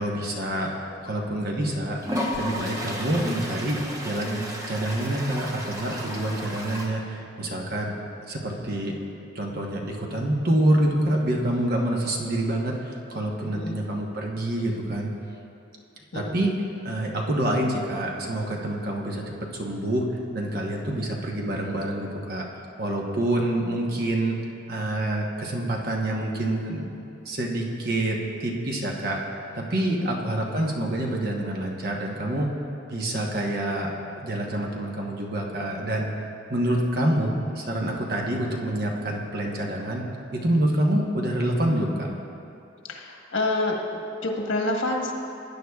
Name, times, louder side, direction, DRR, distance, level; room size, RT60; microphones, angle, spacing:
voice 1, 0.0-2.0 2.4-7.9 8.3-9.0 9.3-15.1 16.1-19.2 19.5-22.5 22.8-24.4 24.7-26.9 27.2-32.5 32.9-33.9 34.2-36.1 36.5-40.0 40.3-42.1, right 1 dB, 50° right, -1 dB, 1.0 m, -27 dB
Toilet flush, 1.1-1.2 2.0-6.9, equal, 15° right, 0.9 m, -33 dB
voice 2, 42.9-45.1, left 2 dB, 90° left, 1 dB, 1.2 m, -28 dB
16.0 x 10.0 x 2.3 m, 2.7 s
head